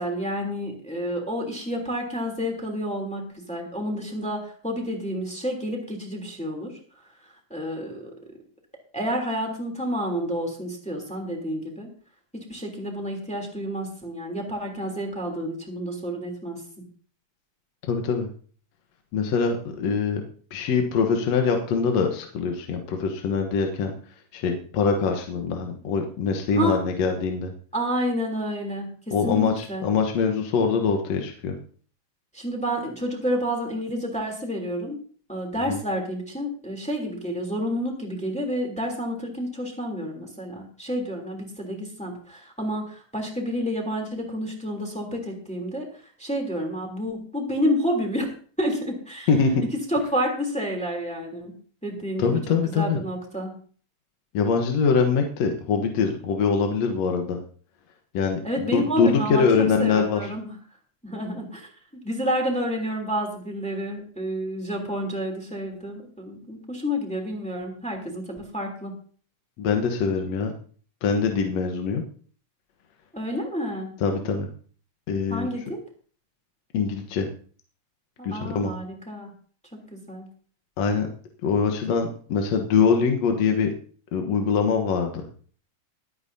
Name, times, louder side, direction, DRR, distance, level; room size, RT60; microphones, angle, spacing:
voice 1, 0.0-6.7 7.5-8.0 8.9-11.9 12.5-16.6 26.6-26.8 27.7-29.9 32.3-35.0 35.3-45.9 46.2-48.3 48.6-49.3 49.9-51.5 51.8-53.5 58.4-59.5 59.8-60.6 61.0-61.7 62.0-68.9 73.1-73.9 75.3-75.8 78.2-79.3 79.9-80.3, equal, ahead, 0 dB, 2.8 m, -29 dB
voice 2, 17.9-18.3 19.1-20.2 20.5-23.9 24.3-27.5 29.1-31.6 35.7-35.8 49.3-49.6 52.2-53.0 54.3-57.4 58.1-60.2 69.6-70.5 71.0-72.0 74.0-74.5 75.1-75.5 76.7-77.3 78.2-78.7 80.8-81.1 81.4-83.7 84.1-85.2, left 5 dB, 65° left, 3 dB, 2.3 m, -23 dB
22.5 x 8.8 x 2.7 m, 0.43 s
omnidirectional pair, 3.3 m